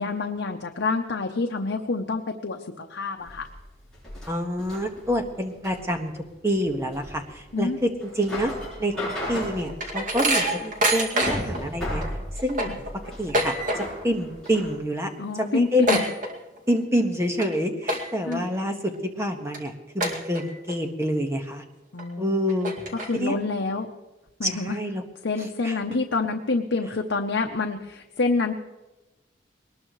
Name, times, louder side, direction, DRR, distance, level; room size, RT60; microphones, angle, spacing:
voice 1, 0.0-3.5 7.5-7.8 12.7-12.8 15.2-16.0 18.3-18.5 21.9-22.4 22.9-23.9 24.4-24.8 25.2-28.5, left 3 dB, 75° left, 3 dB, 0.9 m, -27 dB
sound 1, 3.2-14.8, left 1 dB, 5° left, 7.5 m, -35 dB
voice 2, 4.3-6.1 6.4-8.5 8.8-8.9 9.3-12.0 12.3-12.7 13.2-15.1 15.4-16.0 16.7-21.6 22.2-22.7 23.1-23.3 24.4-25.0 25.4-25.8, equal, 15° right, 4 dB, 1.5 m, -27 dB
sound 2, 9.2-11.6 12.0-12.1 12.4-14.1 14.4-14.7 15.0-15.1 15.4-16.8 17.2-17.5 17.8-18.3 18.8-18.9 19.5-19.6 20.0-20.7 21.2-21.3 22.0-22.1 22.5-23.4, right 1 dB, 45° right, 2.3 m, -26 dB
21.5 x 19.5 x 3.2 m, 1.1 s
head